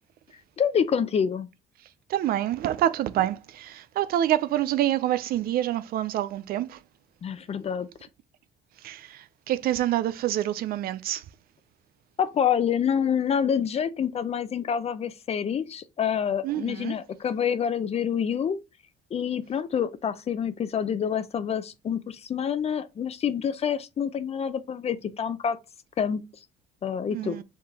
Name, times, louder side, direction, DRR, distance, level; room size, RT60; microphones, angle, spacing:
voice 1, 0.6-1.5 7.2-7.9 12.2-18.6 19.1-25.6 26.0-26.2 26.8-27.4, left 8 dB, 40° left, 0.6 m, -27 dB
voice 2, 2.1-6.8 8.8-9.0 9.5-11.2 16.4-16.9 27.1-27.4, right 12 dB, 65° right, 0.4 m, -26 dB
4.7 x 3.7 x 2.8 m
cardioid pair, 110°, 17 cm